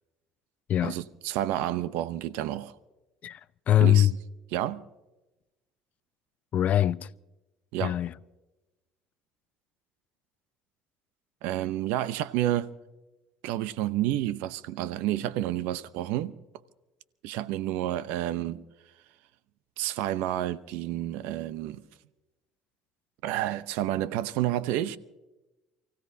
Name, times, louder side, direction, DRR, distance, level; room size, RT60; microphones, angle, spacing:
voice 1, 0.8-2.7 3.8-4.1 4.5-4.8 7.7-7.9 11.4-12.7 13.4-16.3 17.2-18.6 19.8-21.8 23.2-25.0, right 13 dB, 75° right, 0.7 m, -30 dB
voice 2, 3.2-4.1 6.5-7.1 7.8-8.1, left 12 dB, 50° left, 0.5 m, -23 dB
29.0 x 16.0 x 2.8 m
supercardioid pair, 80°, 3 cm